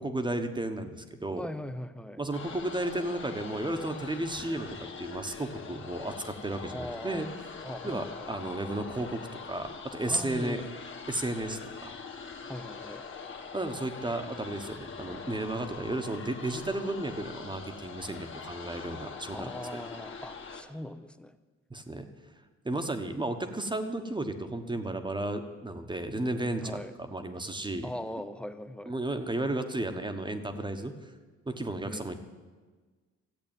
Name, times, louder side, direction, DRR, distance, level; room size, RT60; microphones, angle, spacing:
voice 1, 0.0-1.5 2.2-7.3 7.8-10.6 11.1-11.9 13.5-19.8 21.7-22.1 22.6-27.9 28.9-31.1 31.5-32.1, right 2 dB, 15° right, 7 dB, 1.3 m, -33 dB
voice 2, 1.4-2.2 6.7-7.2 7.6-8.3 10.1-10.7 12.5-13.0 19.3-21.4 26.6-26.9 27.8-28.9 31.8-32.1, left 1 dB, 5° left, 11 dB, 0.7 m, -40 dB
sound 1, 2.3-20.6, left 5 dB, 40° left, 1.7 m, -43 dB
13.5 x 8.2 x 9.0 m, 1.4 s
cardioid pair, 90°, 30 cm